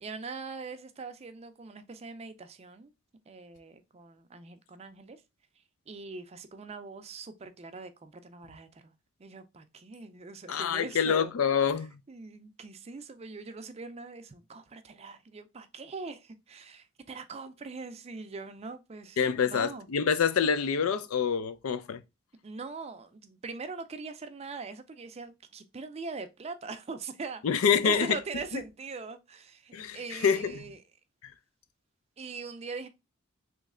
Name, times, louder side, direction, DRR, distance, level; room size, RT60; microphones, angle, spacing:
voice 1, 0.0-2.9 3.3-5.2 5.9-8.9 9.2-11.3 12.1-19.2 19.5-19.9 22.4-30.8 32.2-32.9, right 4 dB, 30° right, 0.4 m, -42 dB
voice 2, 10.5-11.9 19.2-22.0 27.4-28.2 29.7-30.6 31.2-31.3, left 7 dB, 85° left, 0.4 m, -26 dB
3.1 x 3.1 x 3.6 m
head